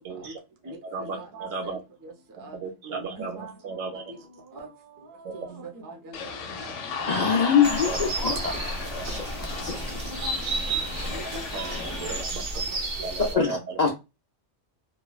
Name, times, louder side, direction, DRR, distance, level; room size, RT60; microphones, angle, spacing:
voice 1, 0.0-0.4 0.6-1.8 2.4-4.0 5.2-5.7 7.8-8.1 9.0-9.1 11.5-11.7 12.0-12.4 13.0-13.6, right 4 dB, 75° right, 1.1 m, -35 dB
voice 2, 1.1-1.7 2.0-2.1 2.4-2.5 2.8-3.5 4.1-4.2 4.5-4.7 5.1-6.3 6.6-6.7 7.0-7.4 8.5-8.7 9.7-10.3 10.7-10.8 11.1-11.9 13.0-13.1, right 3 dB, 30° right, 0.4 m, -41 dB
newjersey OC jillyssnip, 6.1-12.2, left 5 dB, 70° left, 0.9 m, -35 dB
voice 3, 7.1-10.0 13.2-13.9, left 6 dB, 55° left, 0.4 m, -25 dB
sound 1, 7.6-13.4, right 2 dB, 55° right, 0.7 m, -32 dB
3.1 x 2.0 x 2.3 m
omnidirectional pair, 1.3 m